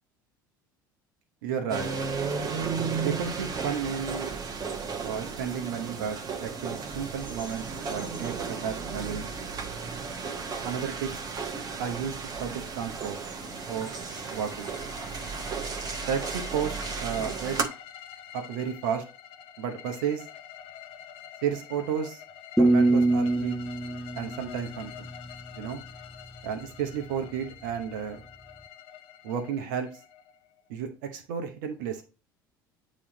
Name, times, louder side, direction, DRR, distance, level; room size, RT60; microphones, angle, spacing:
voice 1, 1.4-1.9 3.0-4.3 5.0-9.3 10.6-11.1 11.8-13.2 13.7-13.9 14.3-14.8 16.1-17.7 18.3-19.0 19.6-20.3 21.4-22.2 22.6-23.6 24.2-25.1 25.5-25.8 26.4-28.2 29.2-29.9 30.7-32.0, right 7 dB, 70° right, 5 dB, 1.0 m, -32 dB
sound 1, 1.7-17.6, right 5 dB, 40° right, 1.1 m, -34 dB
sound 2, 13.0-30.7, left 10 dB, 55° left, 0.7 m, -47 dB
sound 3, 22.6-25.5, right 2 dB, ahead, 0.4 m, -24 dB
8.6 x 3.2 x 3.9 m, 0.34 s
hypercardioid pair, 70°, 11 cm